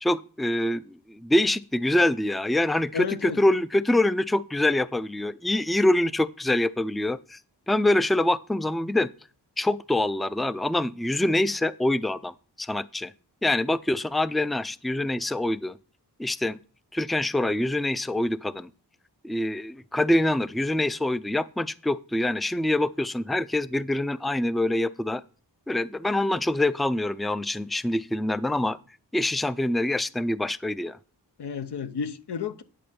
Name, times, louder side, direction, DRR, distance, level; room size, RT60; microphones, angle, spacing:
voice 1, 0.0-7.4 7.7-9.1 9.6-13.1 13.4-15.8 16.2-16.6 16.9-18.7 19.2-25.2 25.7-28.8 29.1-31.0, left 1 dB, ahead, 0.4 m, -25 dB
voice 2, 2.9-3.4 31.4-32.6, left 6 dB, 75° left, 0.8 m, -31 dB
10.5 x 6.4 x 4.3 m
cardioid pair, 45°, 40 cm